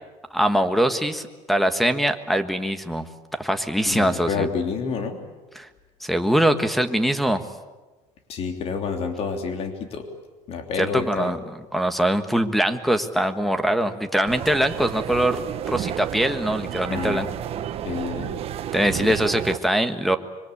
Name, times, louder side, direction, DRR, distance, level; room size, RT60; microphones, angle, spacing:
voice 1, 0.3-4.5 5.5-5.7 6.0-7.4 10.8-17.3 18.7-20.2, right 1 dB, ahead, 10 dB, 1.4 m, -23 dB
voice 2, 3.8-5.2 8.3-10.0 10.5-11.3 16.9-17.2 17.8-18.3, left 5 dB, 50° left, 5 dB, 3.2 m, -28 dB
sound 1, 14.3-19.6, right 10 dB, 50° right, 1.3 m, -31 dB
25.5 x 23.5 x 8.6 m, 1.2 s
cardioid pair, 140°, 13 cm